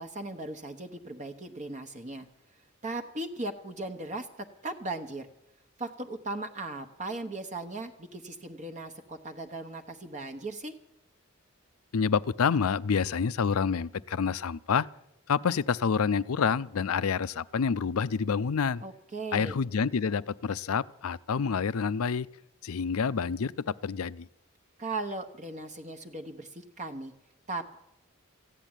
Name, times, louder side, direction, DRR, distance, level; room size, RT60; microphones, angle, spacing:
voice 1, 0.0-2.3 2.8-5.3 5.8-10.7 18.8-19.6 24.8-27.1 27.5-27.7, right 2 dB, 35° right, 5 dB, 1.0 m, -38 dB
voice 2, 11.9-14.9 15.3-18.8 19.3-22.3 22.6-24.3, left 6 dB, 80° left, 18 dB, 0.5 m, -28 dB
15.0 x 10.0 x 8.9 m, 0.82 s
head